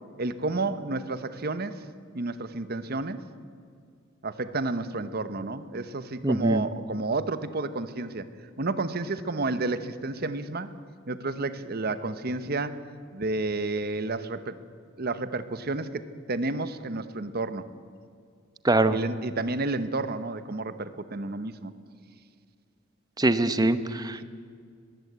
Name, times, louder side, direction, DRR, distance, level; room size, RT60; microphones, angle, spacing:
voice 1, 0.2-1.8 2.1-3.2 4.2-8.3 8.6-10.7 11.1-12.8 13.1-14.6 15.0-17.7 18.9-21.7, right 3 dB, 50° right, 12 dB, 1.0 m, -31 dB
voice 2, 6.2-6.6 18.6-19.0 23.2-24.2, right 2 dB, 20° right, 12 dB, 0.8 m, -23 dB
21.0 x 16.0 x 8.1 m, 2.1 s
head